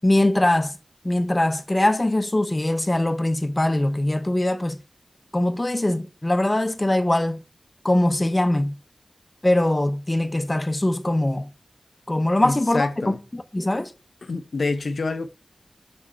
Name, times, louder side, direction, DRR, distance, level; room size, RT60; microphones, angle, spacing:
voice 1, 0.0-0.7 1.0-4.8 5.3-7.4 7.8-8.7 9.4-11.5 12.1-13.9, left 1 dB, 25° left, 0.9 m, -22 dB
voice 2, 12.4-13.2 14.2-15.3, left 3 dB, 75° left, 0.8 m, -27 dB
7.4 x 4.9 x 4.4 m
wide cardioid pair, 70°, 0 cm